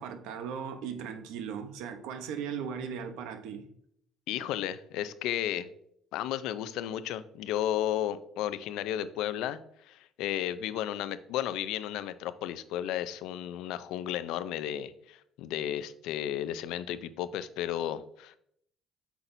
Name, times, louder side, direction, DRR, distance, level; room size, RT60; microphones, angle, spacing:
voice 1, 0.0-3.6, right 7 dB, 90° right, 0.8 m, -37 dB
voice 2, 4.3-5.7 6.1-18.4, left 11 dB, 75° left, 0.4 m, -33 dB
8.1 x 5.8 x 2.6 m
cardioid pair, 165°, 0 cm